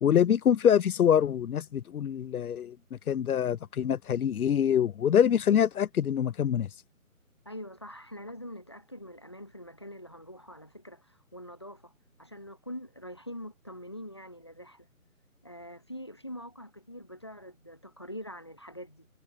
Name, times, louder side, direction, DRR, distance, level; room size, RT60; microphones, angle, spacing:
voice 1, 0.0-2.7 3.1-6.7, left 9 dB, 85° left, 0.6 m, -25 dB
voice 2, 7.4-11.9 12.2-14.9 15.4-19.1, equal, 20° left, 0.7 m, -44 dB
figure-of-eight pair, 165°, 42 cm